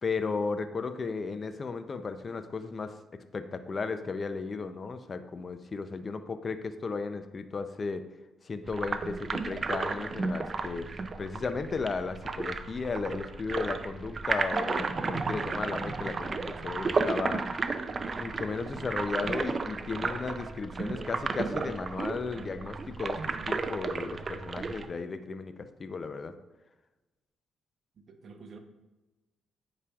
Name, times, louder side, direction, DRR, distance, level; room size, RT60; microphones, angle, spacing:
voice 1, 0.0-3.0 3.3-8.0 8.4-17.4 18.2-26.3, left 4 dB, 40° left, 10 dB, 0.5 m, -35 dB
sound 1, 8.7-24.9, right 4 dB, 35° right, 0.4 m, -33 dB
voice 2, 28.0-28.6, right 4 dB, 55° right, 5 dB, 0.8 m, -49 dB
8.4 x 4.9 x 2.4 m, 1.1 s
cardioid pair, 90°, 0 cm